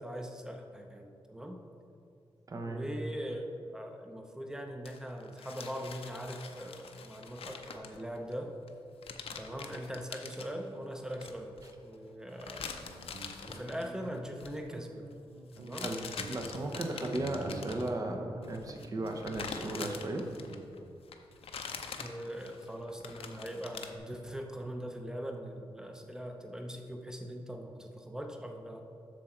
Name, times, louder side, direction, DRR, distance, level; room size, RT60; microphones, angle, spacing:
voice 1, 0.0-1.6 2.6-3.5 3.7-8.5 9.4-12.7 13.5-15.1 15.5-15.9 22.0-28.8, equal, 5° right, 3 dB, 0.6 m, -41 dB
voice 2, 2.5-2.8 15.8-20.2, right 2 dB, 35° right, 3 dB, 0.8 m, -36 dB
sound 1, 4.9-8.3 8.7-8.8 9.0-10.5 11.1-11.7 12.4-13.9 14.2-14.6 15.5-18.0 18.4-20.8 21.1-24.0, left 6 dB, 75° left, 0.6 m, -44 dB
Guitar, 12.5-21.0, right 2 dB, 65° right, 0.6 m, -49 dB
7.6 x 6.5 x 4.4 m, 2.6 s
wide cardioid pair, 150°, 10 cm